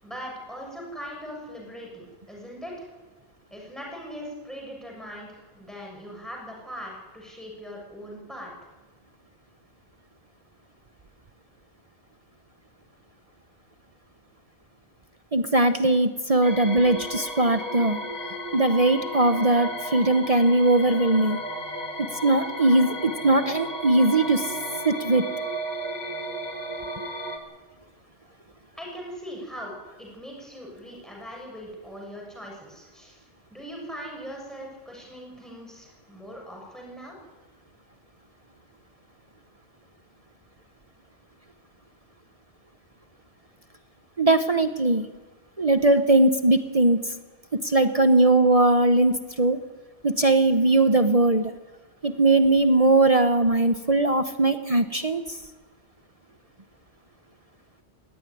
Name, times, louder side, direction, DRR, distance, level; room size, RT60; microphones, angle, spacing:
voice 1, 0.0-2.9 3.5-8.5 28.8-33.2 33.5-37.2, equal, ahead, -1 dB, 6.8 m, -40 dB
voice 2, 15.3-18.0 18.5-21.4 22.0-24.5 24.8-25.3 44.2-45.1 45.6-47.0 47.5-49.6 50.0-51.5 52.0-55.4, right 2 dB, 30° right, 8 dB, 1.0 m, -20 dB
sound 1, 16.4-27.4, equal, 35° left, 2.5 m, -34 dB
19.0 x 16.0 x 9.9 m, 1.3 s
omnidirectional pair, 1.2 m